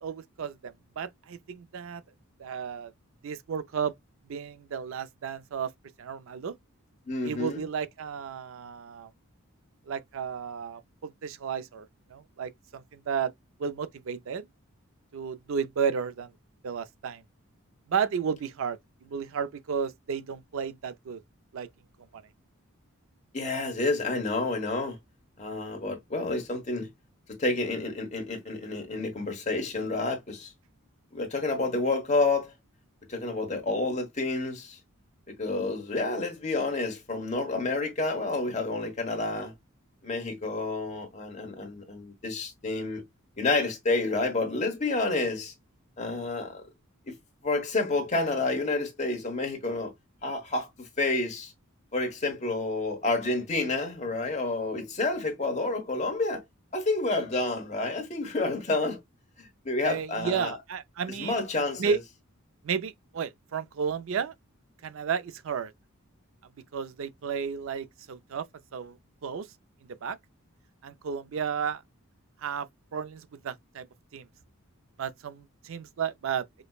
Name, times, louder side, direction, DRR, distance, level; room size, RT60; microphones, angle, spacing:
voice 1, 0.0-2.0 2.4-2.9 3.2-3.9 4.3-5.7 6.0-6.6 7.2-9.1 9.9-13.3 13.6-14.5 15.1-16.3 16.6-17.2 17.9-21.2 21.5-21.7 22.1-22.2 59.8-61.4 61.8-62.0 62.6-64.3 64.8-65.7 66.7-68.5 68.7-69.5 70.0-70.2 70.8-71.8 72.4-73.9 74.1-74.3 75.0-76.5, right 6 dB, 60° right, 0.4 m, -33 dB
voice 2, 7.1-7.6 23.3-25.0 25.4-26.9 27.4-30.5 31.1-32.5 33.1-34.8 35.3-39.5 40.0-43.0 43.4-45.5 46.0-46.6 47.1-47.2 47.4-49.9 50.2-51.5 51.9-56.4 56.7-59.0 59.4-60.5 61.2-62.0, left 2 dB, 30° left, 1.1 m, -29 dB
5.1 x 2.1 x 2.3 m
head